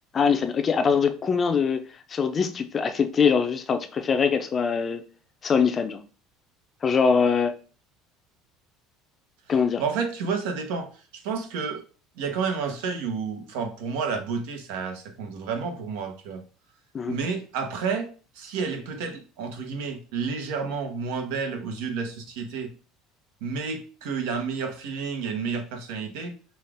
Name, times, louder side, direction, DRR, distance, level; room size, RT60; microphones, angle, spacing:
voice 1, 0.1-5.0 5.4-6.0 6.8-7.5 9.5-9.8 16.9-17.2, left 6 dB, 30° left, 0.5 m, -23 dB
voice 2, 9.8-10.9 11.1-11.8 12.2-16.4 17.1-18.1 18.3-22.7 23.4-26.3, right 5 dB, 80° right, 1.0 m, -30 dB
5.6 x 2.4 x 3.5 m
supercardioid pair, 120°, 0 cm